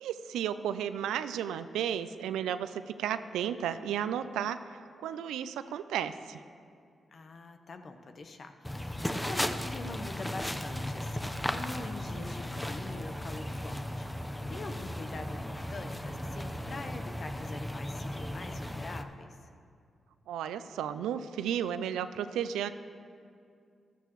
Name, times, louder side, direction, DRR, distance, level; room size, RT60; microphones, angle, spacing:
voice 1, 0.0-4.6 5.0-6.4 20.3-22.7, right 9 dB, 90° right, 12 dB, 0.4 m, -33 dB
voice 2, 7.1-19.4, left 3 dB, 55° left, 7 dB, 1.0 m, -44 dB
sound 1, 8.6-19.0, left 1 dB, 10° left, 0.8 m, -36 dB
15.0 x 12.5 x 3.1 m, 2.4 s
supercardioid pair, 45°, 0 cm